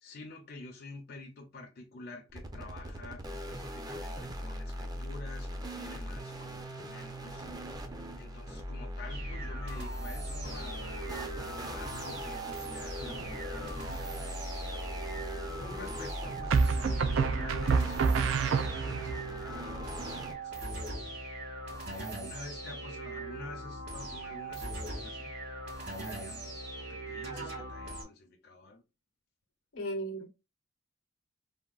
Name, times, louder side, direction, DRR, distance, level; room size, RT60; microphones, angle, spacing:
voice 1, 0.0-7.4 8.2-14.0 14.6-15.2 15.6-21.0 21.8-25.3 25.8-28.8, left 2 dB, 55° left, 0.6 m, -48 dB
sound 1, 2.3-20.3, equal, 20° right, 0.5 m, -40 dB
sound 2, 9.1-28.0, right 2 dB, 60° right, 1.8 m, -41 dB
sound 3, 13.8-14.4 16.5-19.2, right 5 dB, 85° right, 0.4 m, -28 dB
voice 2, 29.7-30.3, right 1 dB, 85° left, 0.8 m, -35 dB
3.5 x 2.3 x 2.3 m
head